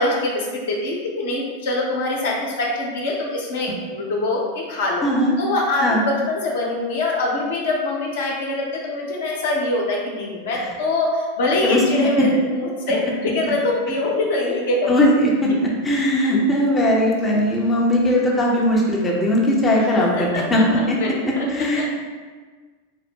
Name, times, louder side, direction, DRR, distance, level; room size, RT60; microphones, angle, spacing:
voice 1, 0.0-5.1 5.4-14.9 19.8-20.5 20.7-21.8, left 2 dB, 55° left, -1 dB, 0.9 m, -24 dB
voice 2, 5.0-5.3 5.8-6.0 11.6-12.1 14.9-21.0 21.2-21.9, left 1 dB, 15° left, -3 dB, 0.8 m, -19 dB
4.4 x 2.1 x 4.6 m, 1.4 s
figure-of-eight pair, 90°, 0 cm